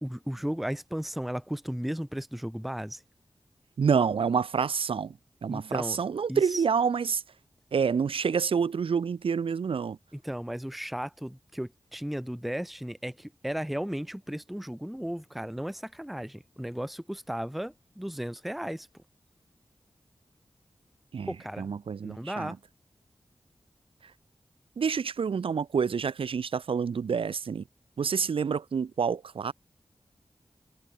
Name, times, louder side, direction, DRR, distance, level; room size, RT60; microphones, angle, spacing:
voice 1, 0.0-3.0 5.5-6.0 6.3-6.6 10.1-18.9 21.3-21.7 22.0-22.6, equal, ahead, 0.5 m, -35 dB
voice 2, 3.8-5.2 5.4-7.2 7.7-10.0 21.1-22.6 24.8-27.6 28.0-29.5, right 6 dB, 80° right, 0.6 m, -28 dB
wide cardioid pair, 75°, 9 cm